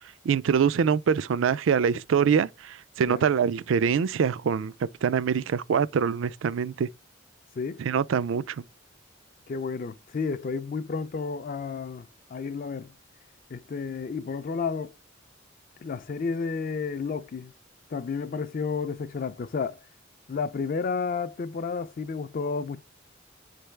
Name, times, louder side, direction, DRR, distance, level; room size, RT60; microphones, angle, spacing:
voice 1, 0.2-6.9 7.8-8.6, right 7 dB, 75° right, 0.4 m, -24 dB
voice 2, 9.5-12.9 13.5-14.9 15.8-17.5 17.9-19.8 20.3-22.8, left 5 dB, 45° left, 0.4 m, -31 dB
9.3 x 3.4 x 3.2 m
head